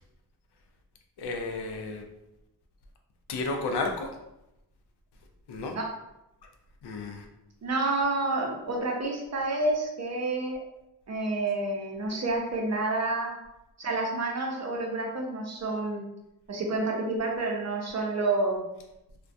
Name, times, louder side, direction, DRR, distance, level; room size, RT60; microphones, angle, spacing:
voice 1, 1.2-2.0 3.3-4.1 5.5-5.7 6.8-7.3, left 3 dB, 80° left, 3 dB, 0.5 m, -32 dB
voice 2, 7.6-10.6 11.1-13.4 13.8-16.1 16.5-18.6, right 2 dB, 40° right, 0 dB, 0.6 m, -29 dB
2.2 x 2.1 x 2.6 m, 0.91 s
cardioid pair, 85°, 39 cm